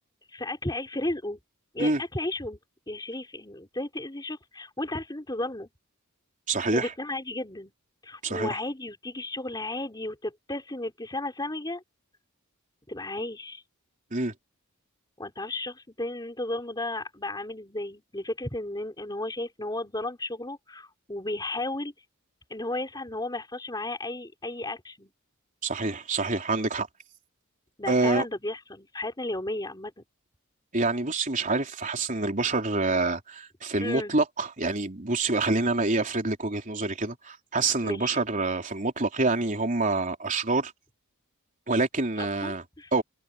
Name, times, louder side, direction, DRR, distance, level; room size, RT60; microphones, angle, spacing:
voice 1, 0.3-1.4 1.7-2.6 2.9-5.7 6.7-7.7 8.0-11.8 12.9-13.6 15.2-21.9 22.5-25.1 27.8-30.0 33.8-34.1 37.8-38.2 42.2-42.9, left 2 dB, 20° left, 4.1 m, -34 dB
voice 2, 6.5-6.9 8.2-8.5 14.1-14.3 25.6-26.9 27.9-28.2 30.7-40.7 41.7-42.6 42.9-43.0, right 3 dB, 35° right, 3.7 m, -26 dB
head